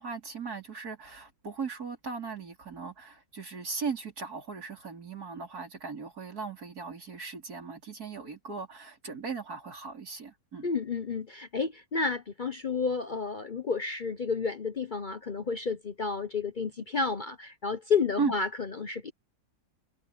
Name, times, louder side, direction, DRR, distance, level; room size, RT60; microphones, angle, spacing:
voice 1, 0.0-10.7 18.2-18.3, right 5 dB, 80° right, 4.8 m, -37 dB
voice 2, 10.6-19.1, left 5 dB, 40° left, 0.7 m, -31 dB
omnidirectional pair, 1.6 m